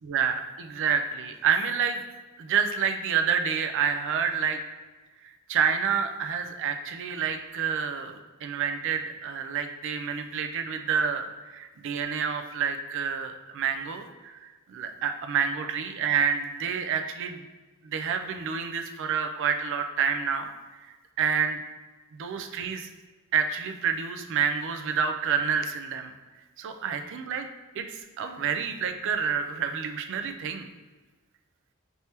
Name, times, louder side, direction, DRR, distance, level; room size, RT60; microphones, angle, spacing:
voice 1, 0.1-2.0 2.4-4.6 5.2-17.4 17.8-20.5 20.8-21.6 22.1-22.9 23.3-26.1 26.6-27.5 27.8-30.7, right 7 dB, 60° right, 7 dB, 0.4 m, -28 dB
4.4 x 3.3 x 2.9 m, 1.3 s
head